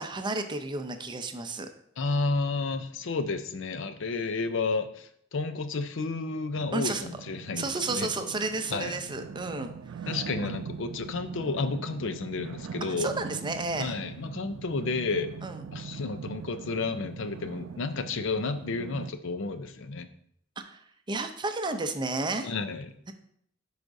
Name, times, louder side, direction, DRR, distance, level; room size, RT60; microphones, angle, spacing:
voice 1, 0.0-1.7 6.7-7.0 7.6-9.7 10.0-10.1 13.0-14.0 15.4-15.6 20.7-20.8 21.1-22.5, right 3 dB, 25° right, 7 dB, 0.5 m, -32 dB
voice 2, 2.0-7.6 7.9-8.1 8.7-9.0 10.1-13.1 13.8-15.3 15.7-20.1 22.4-22.9, left 3 dB, 65° left, 10 dB, 0.6 m, -31 dB
sound 1, 6.5-19.1, right 6 dB, 85° right, 0.3 m, -41 dB
11.0 x 4.9 x 2.6 m, 0.69 s
head